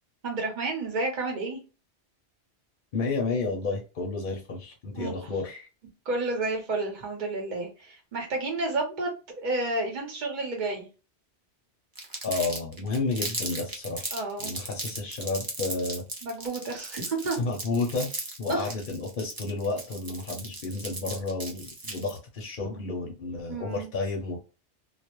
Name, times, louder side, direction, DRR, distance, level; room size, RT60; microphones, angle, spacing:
voice 1, 0.2-1.6 4.9-5.1 6.0-9.1 9.4-10.9 14.1-14.5 16.2-17.4 18.5-18.7 23.5-23.9, right 2 dB, 45° right, 1 dB, 1.0 m, -30 dB
voice 2, 2.9-5.7 12.2-16.0 17.4-18.1 18.4-24.4, left 3 dB, 55° left, 1 dB, 0.7 m, -31 dB
Crumpling crinkling, 12.0-22.2, right 2 dB, 30° right, 0.4 m, -36 dB
2.3 x 2.1 x 2.9 m, 0.32 s
omnidirectional pair, 1.2 m